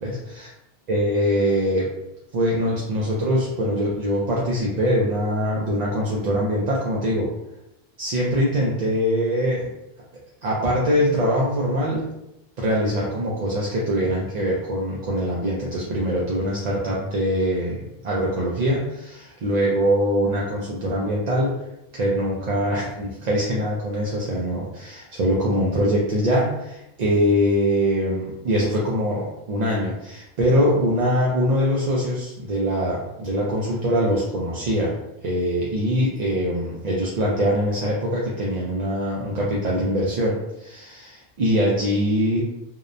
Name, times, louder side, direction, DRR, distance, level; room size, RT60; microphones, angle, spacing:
voice 1, 0.0-0.5 0.9-1.9 2.3-7.3 8.0-9.7 10.1-12.1 12.6-21.5 21.9-42.4, equal, 55° right, -5 dB, 0.5 m, -23 dB
2.8 x 2.0 x 2.4 m, 0.86 s
omnidirectional pair, 1.1 m